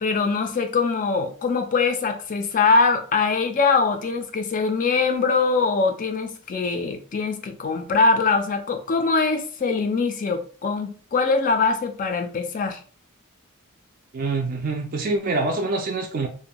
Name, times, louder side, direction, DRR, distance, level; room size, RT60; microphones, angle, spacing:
voice 1, 0.0-12.8, left 4 dB, 35° left, 7 dB, 0.3 m, -22 dB
voice 2, 14.1-16.3, right 3 dB, 40° right, 2 dB, 0.3 m, -25 dB
2.5 x 2.2 x 2.8 m, 0.41 s
head